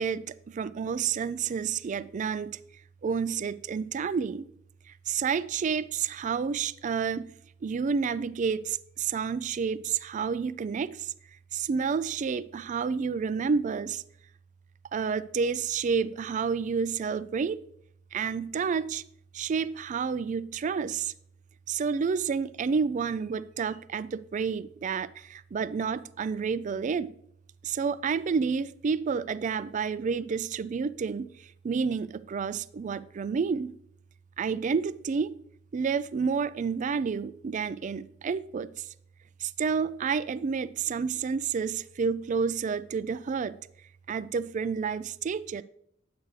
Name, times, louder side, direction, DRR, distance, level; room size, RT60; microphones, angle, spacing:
voice 1, 0.0-2.6 3.0-4.5 4.9-7.3 7.6-11.1 11.5-14.0 14.9-17.6 18.1-19.0 19.3-21.1 21.7-27.1 27.6-33.7 34.4-35.3 35.7-38.9 39.4-43.6 44.1-45.6, right 5 dB, 40° right, 0.3 m, -30 dB
10.0 x 8.1 x 3.2 m
head